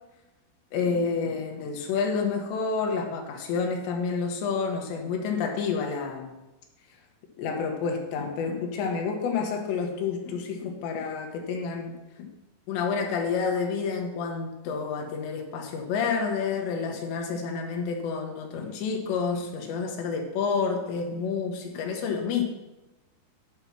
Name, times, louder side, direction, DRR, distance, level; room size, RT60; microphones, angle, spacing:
voice 1, 0.7-6.3 7.4-12.3 12.7-22.4, left 5 dB, 80° left, 3 dB, 3.4 m, -29 dB
11.5 x 5.3 x 5.9 m, 1.0 s
omnidirectional pair, 5.0 m